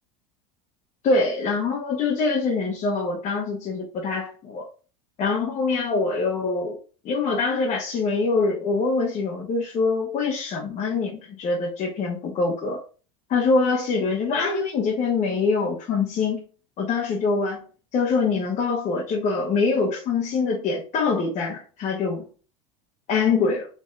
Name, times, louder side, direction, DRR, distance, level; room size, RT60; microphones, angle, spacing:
voice 1, 1.0-4.6 5.2-6.8 7.0-12.8 13.3-16.4 16.8-17.6 17.9-22.3 23.1-23.7, left 4 dB, 40° left, 1.0 m, -24 dB
3.2 x 2.7 x 3.6 m
supercardioid pair, 110°, 18 cm